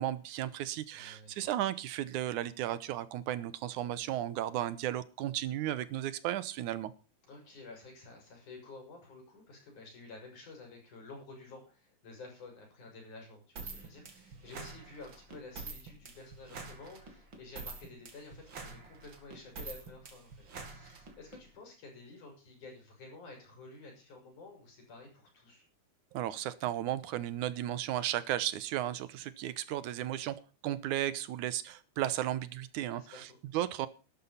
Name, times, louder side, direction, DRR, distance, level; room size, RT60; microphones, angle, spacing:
voice 1, 0.0-6.9 26.1-33.9, right 13 dB, 85° right, 16 dB, 2.4 m, -34 dB
voice 2, 0.9-1.5 7.2-25.6 32.9-33.4, left 3 dB, 80° left, 2 dB, 7.4 m, -51 dB
sound 1, 13.6-21.4, right 4 dB, 40° right, 3.0 m, -46 dB
12.5 x 11.0 x 5.6 m, 0.34 s
omnidirectional pair, 3.4 m